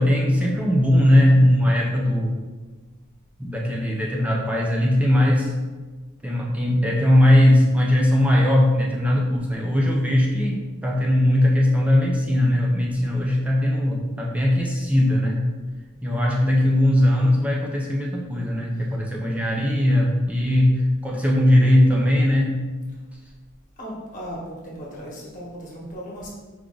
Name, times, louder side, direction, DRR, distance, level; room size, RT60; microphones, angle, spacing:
voice 1, 0.0-2.4 3.4-5.5 6.2-15.5 16.0-22.6, left 1 dB, 5° right, -2 dB, 0.5 m, -19 dB
voice 2, 23.8-26.3, equal, 35° left, -5 dB, 1.1 m, -37 dB
4.6 x 2.5 x 3.7 m, 1.3 s
head